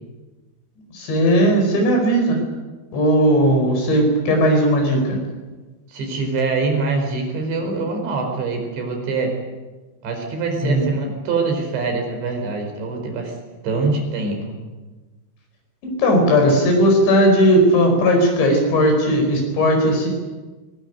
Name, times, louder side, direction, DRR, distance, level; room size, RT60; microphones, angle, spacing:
voice 1, 0.9-2.4 2.9-5.2 10.6-10.8 15.8-20.1, equal, 75° left, 2 dB, 7.2 m, -17 dB
voice 2, 5.9-9.4 10.0-13.4 13.6-14.6, right 4 dB, 75° right, 3 dB, 6.8 m, -24 dB
22.5 x 20.0 x 9.3 m, 1.2 s
omnidirectional pair, 5.2 m